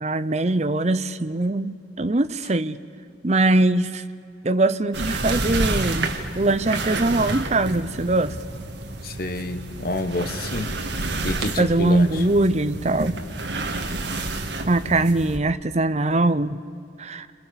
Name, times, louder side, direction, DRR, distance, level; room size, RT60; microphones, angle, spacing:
voice 1, 0.0-2.8 3.2-4.0 4.4-6.1 6.4-8.3 11.6-13.1 14.7-16.6 17.0-17.3, right 2 dB, 35° right, 13 dB, 0.7 m, -22 dB
sound 1, 4.9-15.4, right 2 dB, 65° right, 2.0 m, -29 dB
voice 2, 9.0-10.7 11.2-12.2, left 1 dB, 50° left, 8 dB, 1.4 m, -28 dB
29.5 x 26.5 x 7.0 m, 2.4 s
head